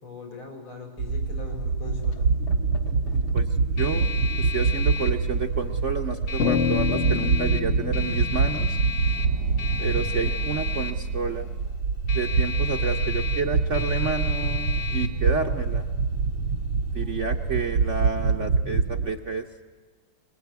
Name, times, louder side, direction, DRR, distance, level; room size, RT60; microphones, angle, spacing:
voice 1, 0.0-2.2, left 4 dB, 90° left, 2 dB, 6.1 m, -40 dB
sound 1, 1.0-17.9, left 7 dB, 70° left, 2.3 m, -36 dB
sound 2, 1.0-19.1, right 4 dB, 80° right, 1.9 m, -25 dB
voice 2, 3.8-4.1 4.4-8.8 9.8-11.5 12.1-15.9 16.9-19.5, right 5 dB, 50° right, 4 dB, 0.9 m, -30 dB
sound 3, 6.4-10.9, left 6 dB, 50° left, 0.9 m, -29 dB
24.5 x 20.5 x 9.5 m, 1.5 s
omnidirectional pair, 2.3 m